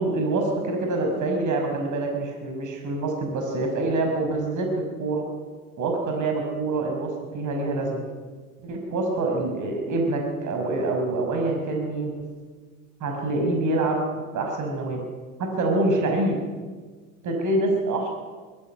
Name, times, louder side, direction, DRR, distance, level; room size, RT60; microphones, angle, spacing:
voice 1, 0.0-4.7 5.0-5.2 5.8-8.0 8.6-12.2 13.0-14.0 14.3-15.0 15.4-16.4 17.2-18.1, right 2 dB, 45° right, 2 dB, 5.7 m, -26 dB
21.0 x 16.0 x 9.8 m, 1.4 s
hypercardioid pair, 90°, 43 cm